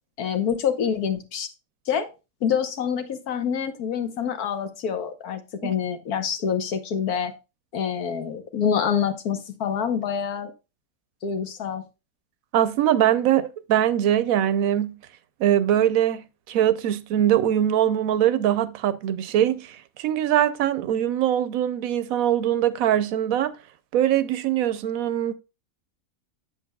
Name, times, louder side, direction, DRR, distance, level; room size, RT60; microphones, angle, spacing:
voice 1, 0.2-1.5 1.9-2.1 2.4-7.3 7.7-10.5 11.2-11.8, left 7 dB, 85° left, 1.5 m, -26 dB
voice 2, 12.5-15.0 15.4-23.5 23.9-25.3, right 11 dB, 75° right, 1.0 m, -22 dB
8.4 x 7.4 x 2.3 m
omnidirectional pair, 1.6 m